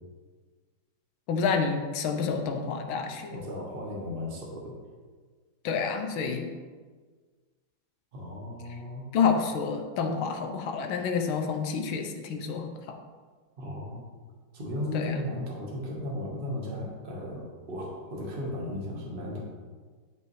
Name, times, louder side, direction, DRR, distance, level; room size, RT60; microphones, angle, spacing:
voice 1, 1.3-3.3 5.6-6.5 9.1-13.0 14.9-15.1, left 5 dB, 85° left, 5 dB, 1.5 m, -29 dB
voice 2, 3.3-4.7 8.1-9.1 13.6-14.0 14.5-19.4, left 1 dB, 30° right, -2 dB, 1.5 m, -35 dB
11.0 x 5.3 x 3.3 m, 1.5 s
omnidirectional pair, 2.2 m